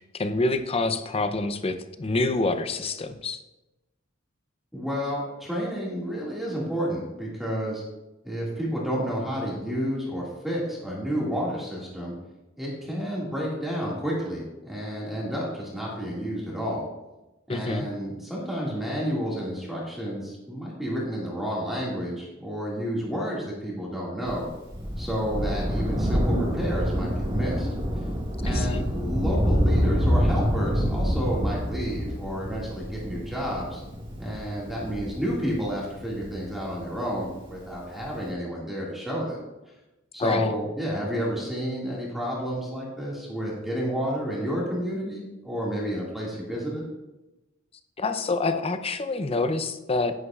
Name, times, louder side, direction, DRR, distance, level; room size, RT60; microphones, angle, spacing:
voice 1, 0.0-3.4 17.5-17.9 28.4-28.8 40.2-40.5 48.0-50.1, left 3 dB, 30° left, 9 dB, 0.6 m, -27 dB
voice 2, 4.7-7.8 8.2-12.1 12.6-16.8 17.5-24.5 25.0-27.7 28.4-33.8 34.2-39.4 40.1-46.8, equal, ahead, -6 dB, 2.1 m, -30 dB
Thunder, 24.3-37.1 38.0-38.1, equal, 25° right, 1.9 m, -27 dB
10.5 x 9.8 x 2.4 m, 1.0 s
head